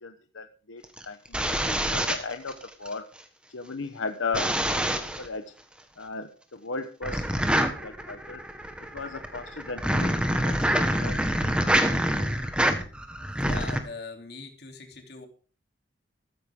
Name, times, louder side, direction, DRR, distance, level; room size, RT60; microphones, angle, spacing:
voice 1, 0.0-3.1 3.5-5.5 6.0-8.4 8.9-11.2, left 4 dB, 85° left, 8 dB, 1.0 m, -37 dB
sound 1, 0.8-2.9 4.3-5.3 7.0-13.8, right 1 dB, 5° right, 1.4 m, -26 dB
voice 2, 13.4-15.3, left 3 dB, 55° left, 3 dB, 3.3 m, -41 dB
14.0 x 13.5 x 3.7 m, 0.39 s
head